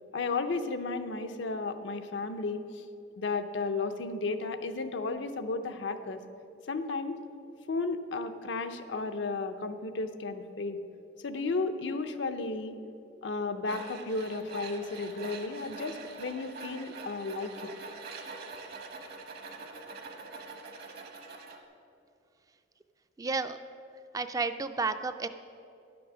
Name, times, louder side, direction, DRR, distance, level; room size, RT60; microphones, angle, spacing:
voice 1, 0.1-2.6 3.2-6.2 6.7-7.2 7.7-10.8 11.2-12.8 13.2-17.5, left 3 dB, 80° left, 8 dB, 0.6 m, -33 dB
Tools, 13.7-21.6, right 4 dB, 55° right, 1.0 m, -44 dB
voice 2, 23.2-23.6 24.1-25.3, right 4 dB, 20° right, 10 dB, 0.3 m, -31 dB
10.5 x 6.1 x 6.1 m, 2.6 s
head